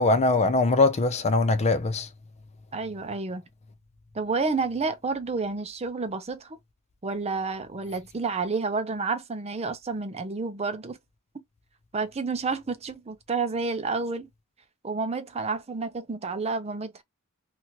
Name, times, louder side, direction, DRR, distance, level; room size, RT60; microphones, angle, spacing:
voice 1, 0.0-2.1, left 3 dB, 30° left, 0.4 m, -22 dB
voice 2, 2.7-3.4 4.1-6.6 7.0-11.0 11.3-11.4 11.9-14.3 14.8-17.0, right 4 dB, 30° right, 0.6 m, -30 dB
2.9 x 2.5 x 2.8 m
head